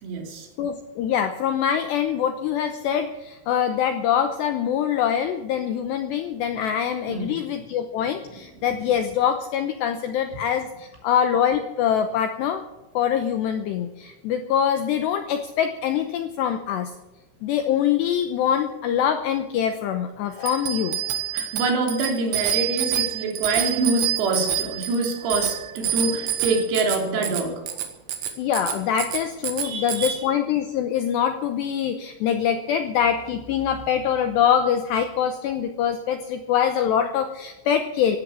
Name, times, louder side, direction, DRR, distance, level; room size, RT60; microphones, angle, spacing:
voice 1, 0.0-0.5 7.1-7.4 20.4-20.6 21.3-27.6 29.6-30.3, right 3 dB, 90° right, 1 dB, 6.1 m, -26 dB
voice 2, 0.6-12.6 12.9-16.9 17.4-21.0 28.4-38.2, left 9 dB, 80° left, 7 dB, 2.5 m, -24 dB
Bicycle bell, 20.4-30.1, right 10 dB, 60° right, 3.0 m, -27 dB
16.5 x 11.5 x 7.1 m, 0.99 s
omnidirectional pair, 6.0 m